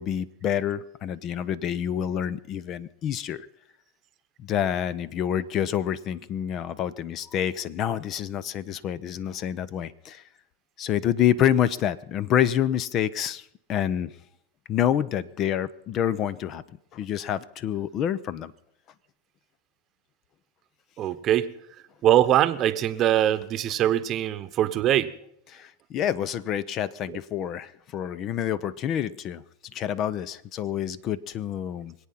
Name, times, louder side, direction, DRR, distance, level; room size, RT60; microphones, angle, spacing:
voice 1, 0.0-3.5 4.4-10.2 10.8-14.1 14.7-16.6 16.9-18.5 25.5-29.4 29.7-31.9, left 10 dB, 40° left, 19 dB, 0.6 m, -27 dB
voice 2, 21.0-21.5 22.0-25.1, right 12 dB, 40° right, 13 dB, 0.9 m, -22 dB
24.5 x 8.6 x 5.7 m, 0.76 s
hypercardioid pair, 110°, 0 cm